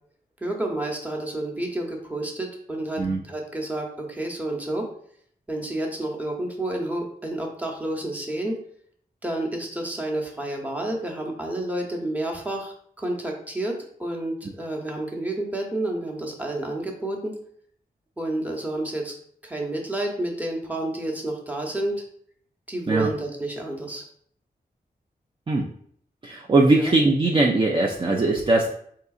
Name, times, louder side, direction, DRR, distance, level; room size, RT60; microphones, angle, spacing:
voice 1, 0.4-4.9 5.5-8.6 9.2-17.3 18.2-19.1 19.4-22.0 22.7-24.0 26.7-26.9, right 1 dB, 10° right, 0 dB, 0.8 m, -30 dB
voice 2, 26.2-28.7, right 2 dB, 30° right, -2 dB, 0.4 m, -20 dB
3.7 x 2.8 x 2.4 m, 0.62 s
cardioid pair, 55°, 17 cm